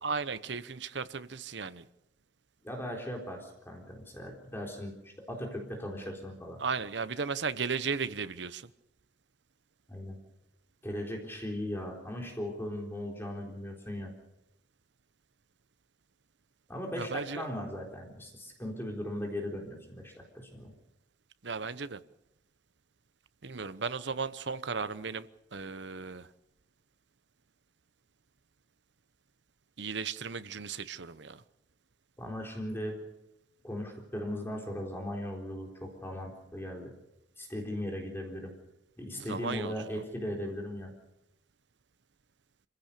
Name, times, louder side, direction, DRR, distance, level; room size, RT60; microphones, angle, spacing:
voice 1, 0.0-1.9 6.6-8.7 17.0-17.4 21.4-22.0 23.4-25.3 25.5-26.3 29.8-31.4 39.2-39.7, right 5 dB, 75° right, 14 dB, 0.9 m, -35 dB
voice 2, 2.6-6.6 9.9-10.2 10.8-14.1 16.7-20.7 32.2-33.0 33.6-36.9 37.4-38.5 39.0-40.9, left 1 dB, 15° left, 1 dB, 4.0 m, -38 dB
26.5 x 16.0 x 6.8 m, 0.88 s
head